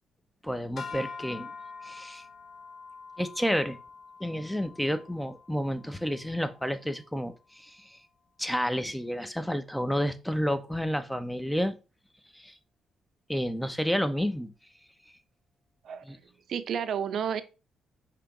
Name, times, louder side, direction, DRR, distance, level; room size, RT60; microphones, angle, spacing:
voice 1, 0.4-1.5 1.8-2.3 3.2-3.8 4.2-8.0 8.4-11.7 12.3-12.5 13.3-14.5 16.0-16.2, equal, 5° left, 0.6 m, -30 dB
sound 1, 0.8-7.1, left 5 dB, 50° left, 1.3 m, -45 dB
voice 2, 15.8-16.2 16.5-17.4, right 8 dB, 65° right, 0.5 m, -31 dB
5.0 x 2.9 x 3.5 m
cardioid pair, 90°, 0 cm